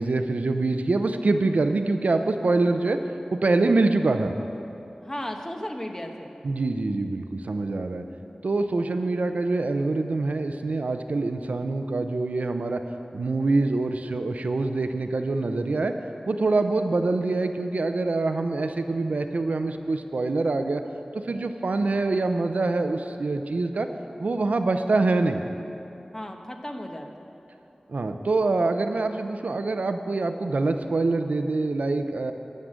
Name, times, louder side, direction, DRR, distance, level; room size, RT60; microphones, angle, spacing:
voice 1, 0.0-3.0 3.3-4.3 6.4-8.0 8.4-12.8 13.1-15.9 16.3-20.8 21.2-23.9 24.2-25.4 27.9-32.3, right 3 dB, 85° right, 7 dB, 0.6 m, -25 dB
voice 2, 5.0-6.4 26.1-27.3, equal, 25° left, 3 dB, 1.0 m, -35 dB
11.5 x 6.5 x 7.5 m, 2.8 s
wide cardioid pair, 70°, 2 cm